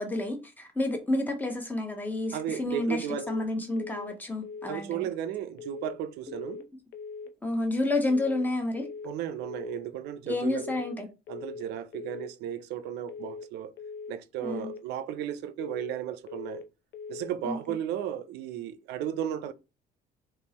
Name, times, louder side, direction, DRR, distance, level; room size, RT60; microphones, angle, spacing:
voice 1, 0.0-5.1 7.4-8.9 10.3-11.1 14.4-14.7 17.4-17.8, left 2 dB, 10° left, 1.0 m, -30 dB
voice 2, 2.3-3.3 4.6-6.6 9.0-10.8 11.3-13.7 14.1-16.6 17.1-19.5, right 10 dB, 80° right, 0.5 m, -34 dB
sound 1, 3.1-3.5 3.8-4.2 4.4-4.8 5.6-6.0 6.3-6.7 6.9-7.3 8.1-8.5 8.8-9.2 9.4-9.8 10.6-11.0 11.3-11.7 11.9-12.3 13.1-13.5 13.8-14.2 14.4-14.8 15.6-16.0 16.3-16.7 16.9-17.3, left 5 dB, 90° left, 0.6 m, -41 dB
3.6 x 2.9 x 2.9 m
cardioid pair, 110°, 17 cm